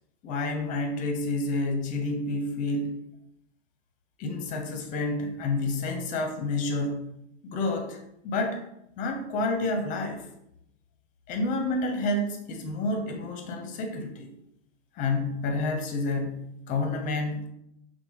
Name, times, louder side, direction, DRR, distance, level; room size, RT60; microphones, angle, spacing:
voice 1, 0.2-3.0 4.2-7.1 7.4-8.6 9.0-10.2 11.3-14.3 15.0-17.5, left 2 dB, 25° left, 5 dB, 0.6 m, -29 dB
5.7 x 2.2 x 3.2 m, 0.80 s
hypercardioid pair, 115°, 34 cm